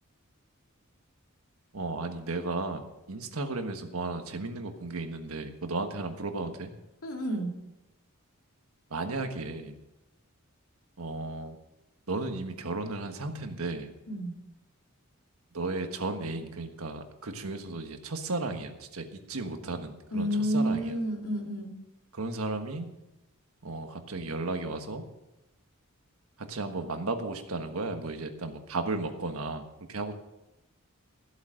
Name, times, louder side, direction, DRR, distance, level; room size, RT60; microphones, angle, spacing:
voice 1, 1.7-2.8 3.1-6.7 8.9-9.8 11.0-11.6 12.1-13.9 15.5-21.0 22.1-22.9 23.6-25.0 26.4-29.6 29.9-30.1, right 3 dB, 85° right, 6 dB, 1.4 m, -34 dB
voice 2, 7.0-7.5 14.1-14.3 20.1-21.7, equal, 85° left, 1 dB, 2.7 m, -30 dB
14.0 x 8.1 x 6.4 m, 0.96 s
head